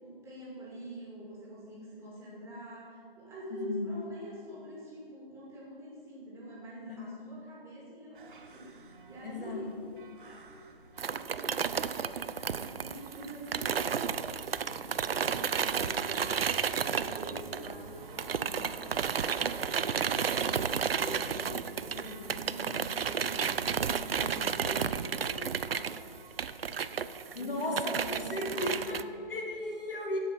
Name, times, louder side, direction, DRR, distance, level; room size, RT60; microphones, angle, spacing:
voice 1, 0.0-9.8 10.2-10.5 11.0-14.2 15.6-16.3 16.7-18.7 19.4-26.1 27.3-29.0, equal, 10° right, -6 dB, 2.4 m, -45 dB
voice 2, 3.5-4.0 6.9-7.0 9.2-9.6 14.9-15.0 15.8-16.1 27.3-30.2, left 2 dB, 65° left, 0 dB, 2.3 m, -36 dB
sound 1, 8.1-27.2, right 3 dB, 60° right, 1.3 m, -52 dB
sound 2, 11.0-17.9 18.2-29.0, right 7 dB, 80° right, 0.5 m, -32 dB
sound 3, 13.6-23.8, equal, 35° left, 2.5 m, -53 dB
14.0 x 5.0 x 7.1 m, 2.5 s
figure-of-eight pair, 140°, 29 cm